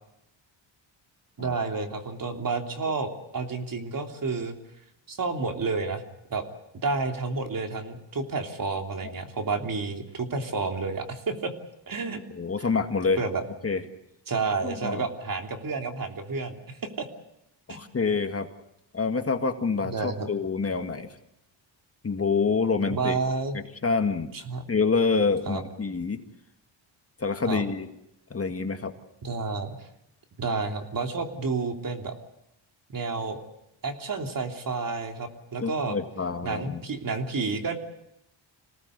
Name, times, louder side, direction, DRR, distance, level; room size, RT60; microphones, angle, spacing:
voice 1, 1.4-4.6 5.1-6.0 6.3-6.5 6.8-11.5 11.9-12.2 13.2-13.4 14.3-17.1 17.7-17.8 19.8-20.3 22.9-23.6 24.3-24.6 25.5-25.6 27.4-27.6 29.2-29.7 30.4-32.2 32.9-33.4 33.8-36.0 36.4-37.8, right 4 dB, 45° right, 4 dB, 3.2 m, -30 dB
voice 2, 12.3-13.2 13.6-13.8 14.6-15.1 17.7-18.5 18.9-21.1 22.0-23.2 23.8-24.3 24.7-26.2 27.2-27.9 28.3-28.9 35.6-36.8, left 4 dB, 30° left, 7 dB, 1.8 m, -27 dB
26.5 x 18.0 x 8.1 m, 0.83 s
cardioid pair, 115°, 47 cm